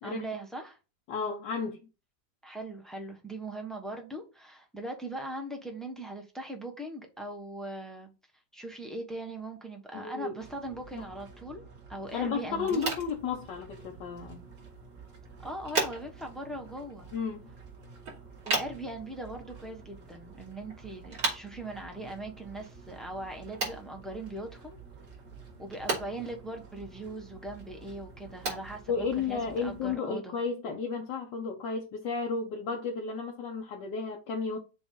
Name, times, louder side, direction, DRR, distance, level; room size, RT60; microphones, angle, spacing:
voice 1, 0.0-0.8 2.4-8.1 8.5-11.6 11.9-12.9 15.4-17.1 18.4-24.8 25.6-30.4, right 1 dB, ahead, 0.8 m, -40 dB
voice 2, 1.1-1.8 9.9-10.3 10.9-11.0 12.1-14.4 17.1-17.5 28.9-34.6, left 5 dB, 75° left, 1.6 m, -33 dB
sound 1, 10.4-30.0, right 4 dB, 50° right, 1.5 m, -51 dB
sound 2, 12.6-29.9, right 3 dB, 70° right, 3.4 m, -39 dB
7.0 x 2.6 x 5.3 m
omnidirectional pair, 1.9 m